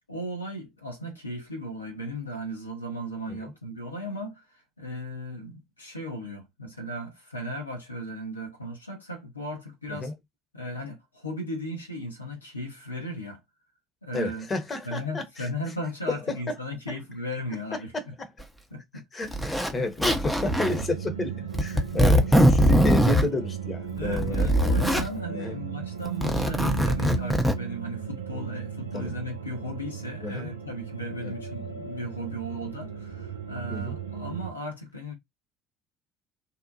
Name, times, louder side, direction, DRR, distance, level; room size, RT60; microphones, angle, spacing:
voice 1, 0.1-10.1 10.5-13.4 14.0-14.5 14.8-17.9 18.7-19.5 19.8-19.9 21.7-22.1 24.0-35.1, equal, 90° left, 0.7 m, -36 dB
voice 2, 14.1-15.5 16.3-16.4 16.9-17.0 19.1-21.3 21.6-24.5 25.3-25.6 28.9-29.1 30.2-30.5 31.2-31.3 33.7-33.9, left 2 dB, 30° left, 0.8 m, -31 dB
Zipper (clothing), 18.4-18.5 19.3-19.7 20.0-20.8 21.5-23.3 24.0-25.1 26.1-27.5, equal, ahead, 0.6 m, -21 dB
sound 1, 20.5-34.5, right 8 dB, 85° right, 0.5 m, -36 dB
2.7 x 2.0 x 2.6 m
figure-of-eight pair, 60°, 0 cm